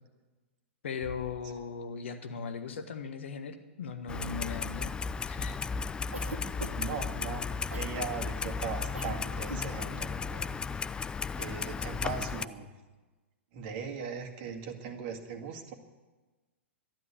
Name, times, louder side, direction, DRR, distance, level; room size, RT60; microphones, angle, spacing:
voice 1, 0.8-4.9 5.2-5.6, left 5 dB, 65° left, 8 dB, 1.4 m, -38 dB
sound 1, 1.0-2.6, left 1 dB, 45° left, 5.2 m, -51 dB
Clock, 4.1-12.5, left 5 dB, 15° left, 0.4 m, -35 dB
Cough, 6.1-7.0 7.7-8.0 8.9-9.2 9.4-9.7, right 2 dB, 85° right, 1.5 m, -41 dB
voice 2, 6.7-10.6 11.4-12.7 13.5-15.7, right 5 dB, 45° right, 3 dB, 1.9 m, -39 dB
12.5 x 11.0 x 8.5 m, 1.2 s
figure-of-eight pair, 105°, 7 cm